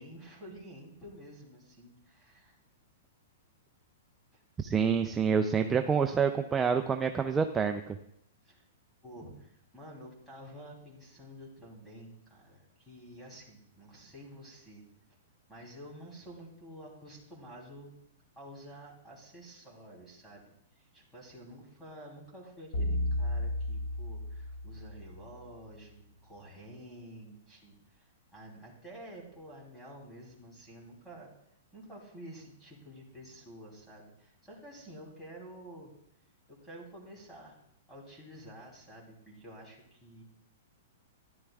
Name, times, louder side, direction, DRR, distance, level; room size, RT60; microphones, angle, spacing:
voice 1, 0.0-2.6 4.3-4.4 8.4-8.7 9.0-14.8 15.5-17.9 18.4-20.4 20.8-31.3 31.7-35.9 36.5-37.6 37.9-40.2, right 1 dB, ahead, -3 dB, 3.1 m, -50 dB
voice 2, 4.6-8.0, right 6 dB, 15° right, 6 dB, 0.4 m, -27 dB
sound 1, 22.7-25.2, left 1 dB, 80° left, 3.3 m, -33 dB
13.5 x 11.0 x 2.4 m, 0.75 s
hypercardioid pair, 150°, 0 cm